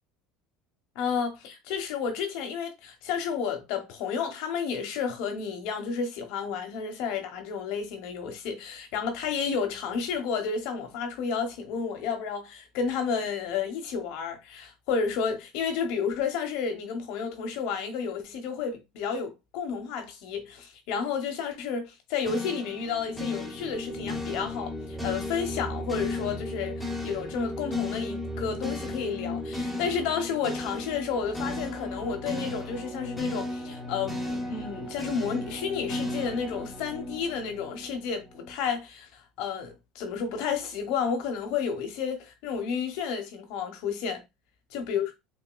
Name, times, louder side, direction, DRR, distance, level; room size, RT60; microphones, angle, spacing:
voice 1, 0.9-44.2 44.7-45.1, left 6 dB, 70° left, 1.0 m, -31 dB
sound 1, 22.2-38.5, left 1 dB, 5° left, 1.0 m, -35 dB
6.2 x 2.2 x 2.2 m
supercardioid pair, 110°, 0 cm